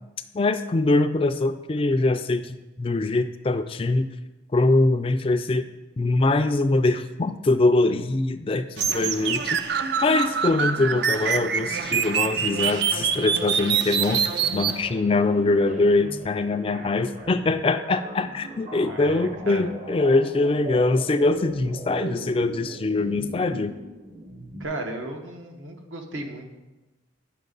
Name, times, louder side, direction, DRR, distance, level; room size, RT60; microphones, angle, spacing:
voice 1, 0.3-4.1 4.5-5.6 6.0-9.7 10.0-14.3 14.5-23.7, left 2 dB, 25° left, 10 dB, 0.3 m, -23 dB
sound 1, 8.8-14.8, right 7 dB, 55° right, 0.4 m, -25 dB
sound 2, 13.0-24.7, right 2 dB, 40° right, 0.8 m, -39 dB
voice 2, 18.7-19.6 24.6-26.5, right 2 dB, 75° right, 3 dB, 1.2 m, -35 dB
9.2 x 5.9 x 3.9 m, 1.1 s
head